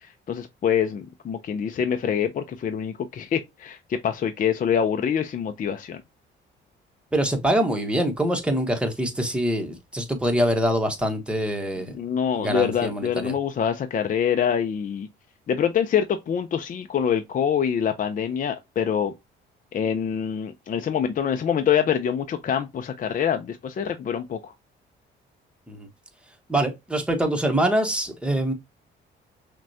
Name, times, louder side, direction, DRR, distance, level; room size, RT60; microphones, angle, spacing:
voice 1, 0.0-6.0 11.9-15.1 15.5-19.1 19.7-24.5, left 8 dB, 45° left, 0.4 m, -25 dB
voice 2, 7.1-11.9 12.3-13.3 25.7-25.9 26.5-28.5, right 1 dB, 5° right, 1.0 m, -24 dB
5.9 x 2.2 x 2.7 m
cardioid pair, 90°, 20 cm